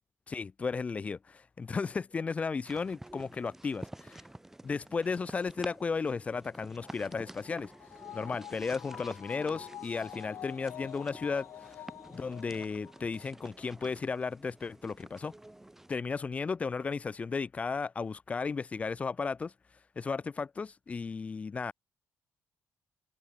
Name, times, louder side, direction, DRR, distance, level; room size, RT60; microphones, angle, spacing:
voice 1, 0.3-4.2 4.6-7.7 8.1-11.8 12.1-15.3 15.9-19.5 20.0-21.7, left 5 dB, 25° left, 0.7 m, -34 dB
sound 1, 2.6-16.0, right 1 dB, 5° right, 1.8 m, -50 dB
sound 2, 6.8-13.5 13.8-13.9, left 12 dB, 75° left, 2.9 m, -48 dB
cardioid pair, 160°, 5 cm